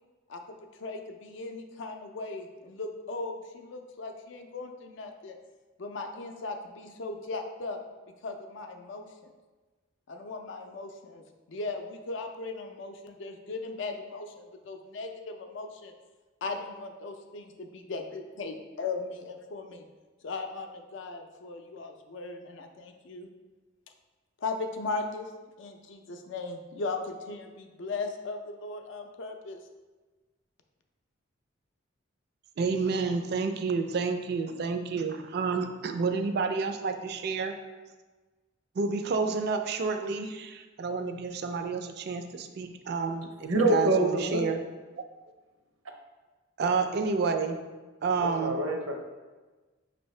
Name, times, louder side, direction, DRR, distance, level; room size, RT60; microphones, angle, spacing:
voice 1, 0.8-5.4 5.8-7.8 8.2-9.3 10.1-15.9 16.4-19.8 20.2-23.3 24.4-25.3 25.6-29.6, left 3 dB, 65° left, 5 dB, 0.4 m, -38 dB
voice 2, 32.6-37.5 38.8-44.6 45.0-45.1 46.6-47.6 48.0-48.6, right 4 dB, 50° right, 7 dB, 0.3 m, -30 dB
voice 3, 43.5-44.4 48.2-48.9, right 1 dB, 85° right, 2 dB, 0.6 m, -26 dB
5.3 x 2.7 x 3.1 m, 1.3 s
head